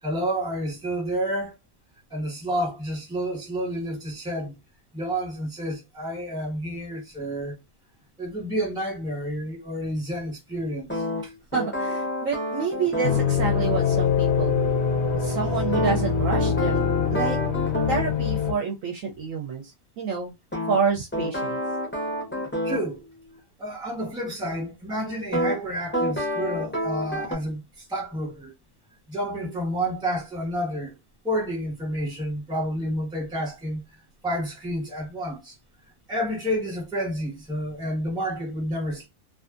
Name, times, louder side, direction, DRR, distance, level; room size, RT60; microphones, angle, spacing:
voice 1, 0.0-1.5 2.1-4.6 4.9-7.6 8.2-11.3 22.6-23.0 23.6-28.5 29.1-30.9 31.2-33.8 34.2-35.5 36.1-39.1, equal, 5° right, 1.0 m, -30 dB
sound 1, 10.9-13.3 15.7-18.1 20.5-22.9 25.3-25.6 25.9-27.3, left 1 dB, 15° left, 0.4 m, -28 dB
voice 2, 11.5-14.8 15.2-16.8 17.1-17.4 17.9-20.3 20.7-21.6, right 5 dB, 70° right, 0.9 m, -28 dB
sound 2, 13.0-18.5, left 6 dB, 55° left, 0.8 m, -24 dB
2.6 x 2.4 x 2.4 m
omnidirectional pair, 1.6 m